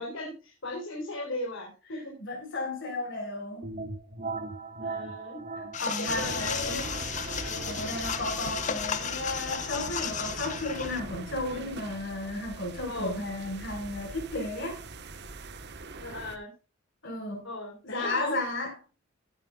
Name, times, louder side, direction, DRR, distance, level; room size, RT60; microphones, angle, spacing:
voice 1, 0.0-2.1 4.8-5.4 5.9-6.9 7.4-7.8 11.5-11.7 12.9-13.2 16.0-16.5 17.4-18.3, left 2 dB, 90° left, 4.1 m, -37 dB
voice 2, 1.9-3.7 5.6-6.8 7.6-14.8 17.0-17.5 17.8-18.7, left 2 dB, 65° left, 4.7 m, -34 dB
sound 1, 3.6-13.2, right 3 dB, 40° right, 1.4 m, -42 dB
sound 2, 5.7-11.0, left 7 dB, 40° left, 1.0 m, -34 dB
sound 3, 6.1-16.4, right 3 dB, 60° right, 1.2 m, -41 dB
16.0 x 9.7 x 2.4 m
head